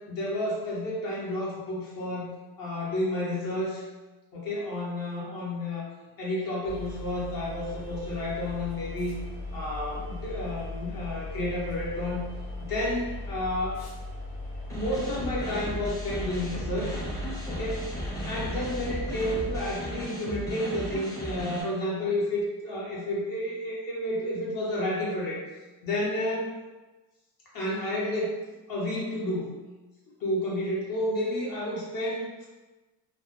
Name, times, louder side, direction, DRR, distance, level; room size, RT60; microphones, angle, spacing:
voice 1, 0.1-3.8 4.3-5.9 6.2-9.2 9.5-12.3 12.6-13.8 14.7-17.0 17.4-17.9 18.3-25.4 25.8-26.6 27.5-28.4 28.7-29.5 30.2-32.5, left 1 dB, 55° left, -5 dB, 0.8 m, -31 dB
sound 1, 6.6-19.7, left 2 dB, 90° left, 1.0 m, -38 dB
sound 2, 14.7-21.6, right 1 dB, 10° left, 0.5 m, -36 dB
2.1 x 2.0 x 2.9 m, 1.2 s
cardioid pair, 120°, 43 cm